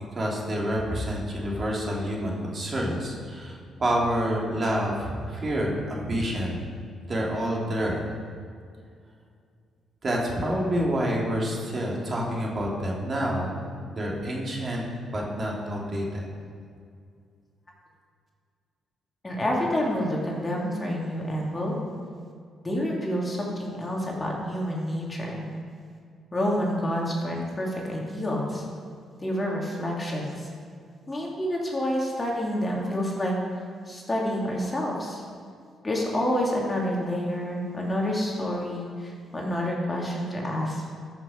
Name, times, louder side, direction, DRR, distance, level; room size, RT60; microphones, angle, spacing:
voice 1, 0.1-6.6 7.1-8.0 10.0-13.6 13.9-14.8 15.1-16.3, equal, 35° right, -3 dB, 2.4 m, -28 dB
voice 2, 19.2-21.8 22.6-25.5 26.3-28.6 29.2-30.5 31.1-33.4 33.9-35.2 35.8-41.0, equal, 25° left, -2 dB, 2.3 m, -28 dB
13.0 x 6.1 x 5.1 m, 2.2 s
cardioid pair, 90°, 0 cm